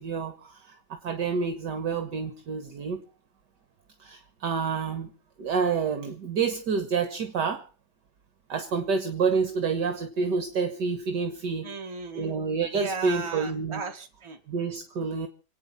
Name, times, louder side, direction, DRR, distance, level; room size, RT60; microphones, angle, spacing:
voice 1, 0.0-3.0 4.0-5.1 5.4-7.6 8.5-11.7 12.1-13.8 14.5-15.3, right 5 dB, 60° right, 8 dB, 1.9 m, -28 dB
voice 2, 11.6-12.3 12.7-14.4, right 4 dB, 15° right, 2 dB, 2.1 m, -35 dB
27.5 x 9.1 x 5.6 m, 0.38 s
omnidirectional pair, 2.1 m